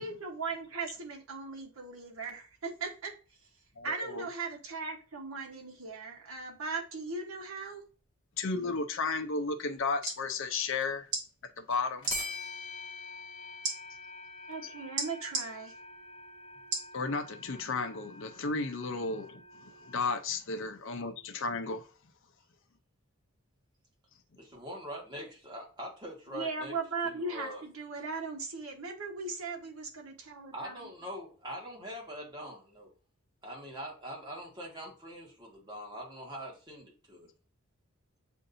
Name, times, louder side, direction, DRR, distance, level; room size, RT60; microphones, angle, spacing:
voice 1, 0.0-3.1 3.8-7.8 14.5-15.7 26.3-30.9, right 4 dB, 75° right, 1.2 m, -38 dB
voice 2, 3.8-4.3 8.4-11.1 11.6-12.1 16.9-19.4 19.8-21.9, left 4 dB, 60° left, 0.6 m, -33 dB
sound 1, 9.1-9.4 10.8-10.9 12.0-20.0, left 2 dB, 25° left, 1.1 m, -45 dB
sound 2, 9.8-10.2 11.1-11.3 12.0-12.2 13.6-13.8 15.0-15.5 16.7-16.9 17.5-17.6, right 3 dB, 55° right, 1.7 m, -33 dB
voice 3, 24.4-26.7 27.0-27.6 30.5-32.9 33.4-37.3, equal, 20° right, 1.6 m, -43 dB
7.6 x 2.6 x 2.6 m
head